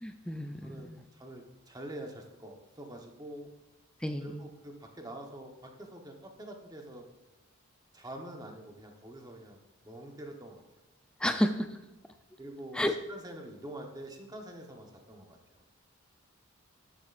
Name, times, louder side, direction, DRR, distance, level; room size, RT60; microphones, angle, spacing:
voice 1, 0.0-1.0 4.0-4.4 11.2-11.8 12.7-12.9, equal, 5° left, 7 dB, 0.3 m, -31 dB
voice 2, 0.6-3.5 4.2-7.0 7.9-10.6 12.4-15.6, right 1 dB, 15° right, 2 dB, 1.0 m, -46 dB
12.0 x 7.3 x 2.5 m, 1.1 s
head